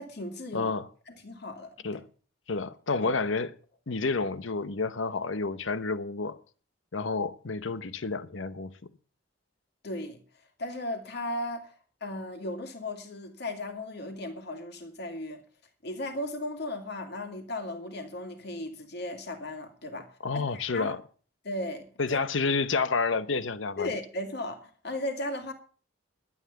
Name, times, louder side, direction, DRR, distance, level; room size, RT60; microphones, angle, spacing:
voice 1, 0.0-0.7 1.1-1.9 3.0-3.1 9.8-10.2 10.6-11.7 12.0-15.4 15.8-20.9 21.4-22.2 23.8-25.5, left 1 dB, 55° left, 2.7 m, -36 dB
voice 2, 0.5-0.9 1.8-2.1 2.5-3.5 3.9-6.4 6.9-8.9 20.2-21.0 22.0-23.9, left 4 dB, 70° left, 0.9 m, -30 dB
12.0 x 9.2 x 7.0 m
head